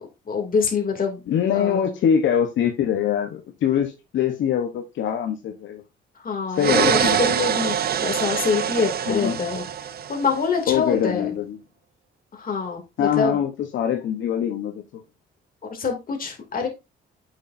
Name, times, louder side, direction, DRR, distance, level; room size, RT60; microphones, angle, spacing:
voice 1, 0.3-1.2 1.5-1.8 6.2-9.6 10.1-11.3 12.3-13.4 15.6-16.7, left 5 dB, 45° left, 2.7 m, -25 dB
voice 2, 1.3-5.8 6.6-7.2 9.1-9.4 10.7-11.6 13.0-14.8, left 9 dB, 70° left, 1.1 m, -23 dB
sound 1, 6.6-10.5, right 8 dB, 50° right, 0.7 m, -24 dB
8.1 x 6.3 x 2.6 m
cardioid pair, 90°, 20 cm